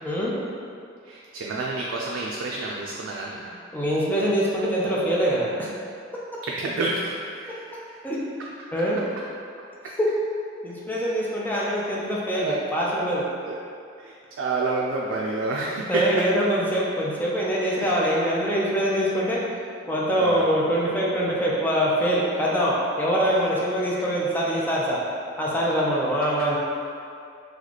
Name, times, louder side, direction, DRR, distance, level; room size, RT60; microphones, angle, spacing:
voice 1, 0.0-0.3 3.7-5.7 8.0-8.2 8.7-9.0 10.0-10.1 10.6-13.3 15.9-19.4 19.9-25.0 25.4-26.6, equal, 10° left, -5 dB, 0.5 m, -24 dB
voice 2, 1.0-3.5 6.5-8.0 11.5-12.0 12.3-12.6 13.5-13.6 14.0-16.2 20.2-20.4, right 3 dB, 90° right, -3 dB, 0.4 m, -29 dB
3.0 x 2.3 x 3.9 m, 2.4 s
head